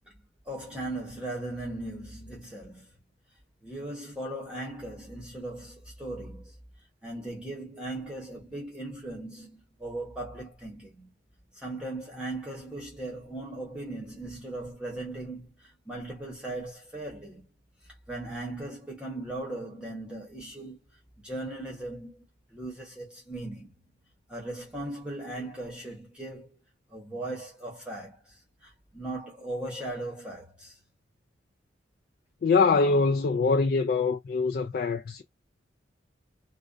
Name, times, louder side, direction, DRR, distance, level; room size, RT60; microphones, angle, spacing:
voice 1, 0.4-2.9 3.6-6.5 7.0-11.1 11.5-17.5 18.1-20.8 21.2-22.2 22.5-23.7 24.3-26.6 26.9-30.8, right 2 dB, 5° right, 0.9 m, -38 dB
voice 2, 32.4-35.2, left 4 dB, 55° left, 0.3 m, -24 dB
2.5 x 2.1 x 2.4 m
head